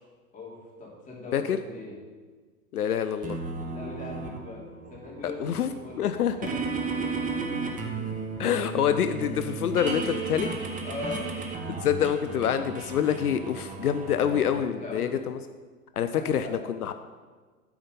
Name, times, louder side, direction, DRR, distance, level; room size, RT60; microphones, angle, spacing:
voice 1, 0.3-2.0 3.6-4.6 4.9-8.1 10.8-11.2 14.2-15.2 16.1-16.6, left 3 dB, 15° left, -4 dB, 3.2 m, -40 dB
voice 2, 2.7-3.4 5.2-5.7 6.0-6.3 8.4-10.5 11.8-15.4 16.0-16.9, left 9 dB, 80° left, 10 dB, 0.6 m, -26 dB
sound 1, 3.2-14.6, right 4 dB, 20° right, 1.1 m, -34 dB
12.5 x 5.2 x 5.4 m, 1.4 s
hypercardioid pair, 110°, 45 cm